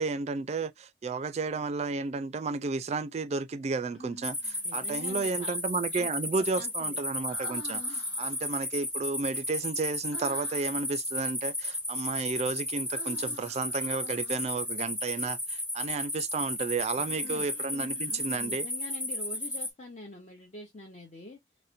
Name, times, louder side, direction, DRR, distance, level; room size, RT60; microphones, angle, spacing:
voice 1, 0.0-18.7, right 4 dB, 40° right, 0.3 m, -32 dB
Human voice, 3.9-4.8 7.3-8.6 10.1-10.9 12.9-14.7 16.9-18.5, left 2 dB, 75° left, 1.2 m, -49 dB
sound 1, 4.2-19.7, left 1 dB, 10° left, 1.0 m, -34 dB
voice 2, 4.6-5.6 5.9-6.1 6.6-7.0 17.0-17.1 17.3-17.5 18.0-21.4, left 2 dB, 40° left, 0.8 m, -45 dB
4.1 x 2.1 x 2.5 m
head